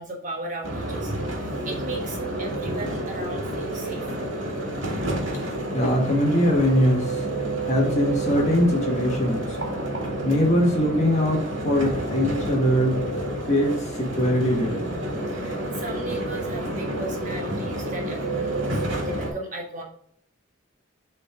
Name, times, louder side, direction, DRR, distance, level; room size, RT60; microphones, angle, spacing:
voice 1, 0.0-4.2 15.3-19.8, right 2 dB, 40° right, -1 dB, 1.3 m, -36 dB
sound 1, 0.6-19.3, right 1 dB, 75° right, 1.9 m, -29 dB
voice 2, 5.7-7.2 7.6-9.6 10.2-13.0 13.5-14.9, equal, 35° left, -1 dB, 1.7 m, -22 dB
7.5 x 3.7 x 3.7 m, 0.68 s
head